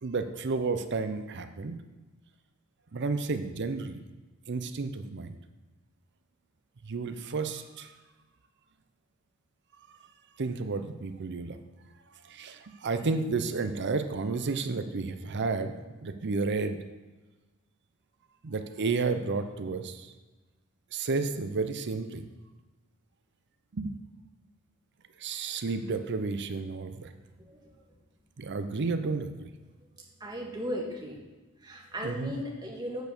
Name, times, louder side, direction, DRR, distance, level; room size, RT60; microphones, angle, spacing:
voice 1, 0.0-1.8 2.9-4.0 4.5-5.3 6.8-7.9 10.4-11.6 12.3-15.7 16.0-16.8 18.4-20.1 20.9-22.3 23.7-23.9 25.2-27.1 28.4-29.3 32.0-32.3, right 4 dB, 55° right, 9 dB, 0.6 m, -31 dB
voice 2, 27.4-27.7 29.8-29.9 30.2-31.2 31.6-33.0, equal, 20° right, -2 dB, 1.8 m, -36 dB
8.1 x 4.6 x 6.6 m, 1.2 s
head